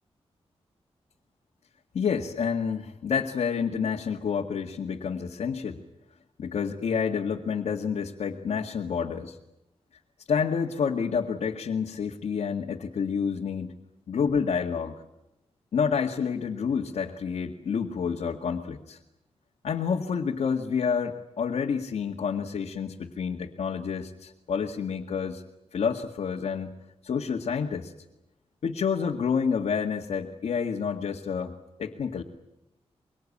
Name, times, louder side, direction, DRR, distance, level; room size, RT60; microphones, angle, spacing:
voice 1, 1.9-5.8 6.4-9.4 10.3-13.7 14.1-14.9 15.7-19.0 19.6-25.4 25.7-26.7 27.0-27.9 28.6-32.2, left 6 dB, 80° left, 0 dB, 1.9 m, -29 dB
24.5 x 23.5 x 8.6 m, 0.87 s
wide cardioid pair, 120°, 11 cm